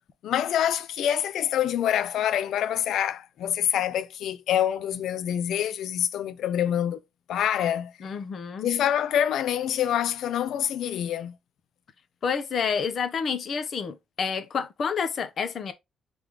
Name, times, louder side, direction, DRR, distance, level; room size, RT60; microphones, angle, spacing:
voice 1, 0.2-7.0 7.3-8.1 8.6-11.4, left 10 dB, 75° left, 0.5 m, -26 dB
voice 2, 8.0-8.7 12.2-15.7, left 6 dB, 55° left, 0.9 m, -29 dB
3.7 x 3.4 x 3.1 m
cardioid pair, 90°, 0 cm